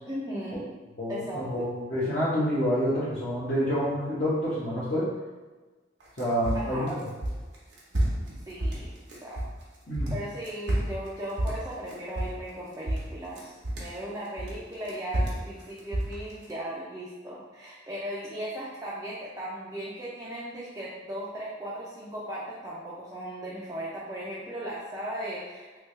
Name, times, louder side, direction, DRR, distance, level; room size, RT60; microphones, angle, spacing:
voice 1, 0.1-0.7 1.1-1.7 6.5-6.9 8.5-8.9 9.2-9.4 10.1-25.8, right 1 dB, 20° right, -8 dB, 0.5 m, -37 dB
voice 2, 1.0-5.1 6.2-7.1 9.9-10.1, equal, 50° left, -11 dB, 0.9 m, -28 dB
sound 1, 6.0-9.6 9.9-12.6 12.9-14.0 14.4-16.5, right 1 dB, 70° right, 0.8 m, -30 dB
3.3 x 2.4 x 3.1 m, 1.3 s
head